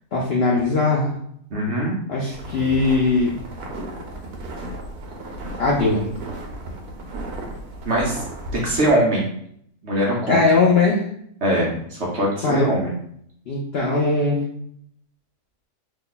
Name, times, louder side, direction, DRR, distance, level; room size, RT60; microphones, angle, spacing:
voice 1, 0.1-1.1 2.1-3.3 5.6-6.0 10.3-11.0 12.4-12.7 13.5-14.4, left 3 dB, 70° left, -3 dB, 0.6 m, -19 dB
voice 2, 1.5-1.9 7.8-8.2 8.5-9.3 9.8-10.4 11.4-12.9, right 1 dB, 55° right, -3 dB, 0.8 m, -21 dB
sound 1, 2.3-8.9, right 1 dB, 75° right, 1.1 m, -34 dB
3.0 x 2.2 x 3.9 m, 0.68 s
omnidirectional pair, 1.7 m